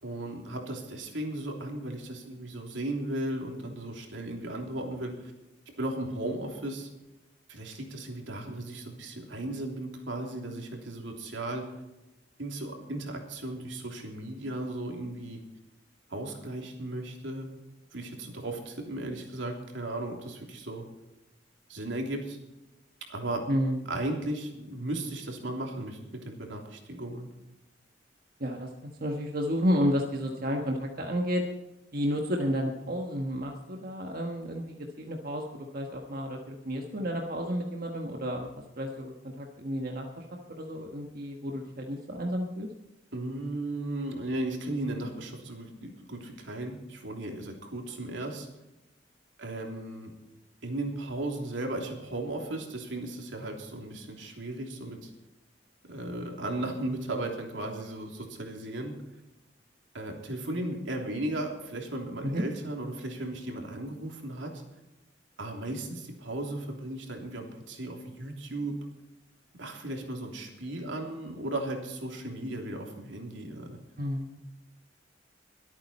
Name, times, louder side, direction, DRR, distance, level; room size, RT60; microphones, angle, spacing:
voice 1, 0.0-5.3 5.8-6.9 7.5-11.7 12.4-15.4 16.1-17.5 17.9-20.8 21.7-22.4 23.1-23.4 23.9-27.3 43.1-48.5 49.4-50.1 50.6-55.1 55.9-58.9 59.9-64.6 65.4-68.7 69.5-73.8, right 1 dB, 85° right, 2 dB, 3.2 m, -36 dB
voice 2, 23.5-23.9 28.4-31.4 31.9-42.7 62.2-62.4 74.0-74.4, equal, 55° right, 2 dB, 1.4 m, -31 dB
23.0 x 8.8 x 4.3 m, 0.98 s
head